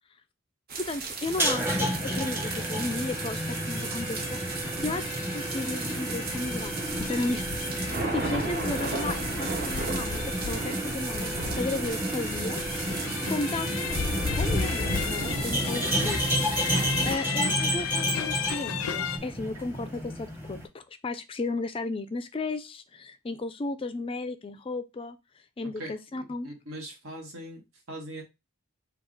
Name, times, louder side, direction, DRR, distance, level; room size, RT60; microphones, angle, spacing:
voice 1, 0.7-12.6 13.3-14.1 14.4-16.3 16.5-25.2 25.6-26.5, left 2 dB, 25° left, 0.3 m, -34 dB
sound 1, 0.7-17.1, right 4 dB, 45° right, 0.8 m, -35 dB
sound 2, 1.3-20.7, equal, 10° right, 0.8 m, -31 dB
sound 3, 2.4-19.2, left 7 dB, 85° left, 0.5 m, -35 dB
voice 2, 26.4-27.6 27.9-28.2, right 1 dB, 80° right, 1.5 m, -40 dB
4.9 x 2.3 x 3.7 m
head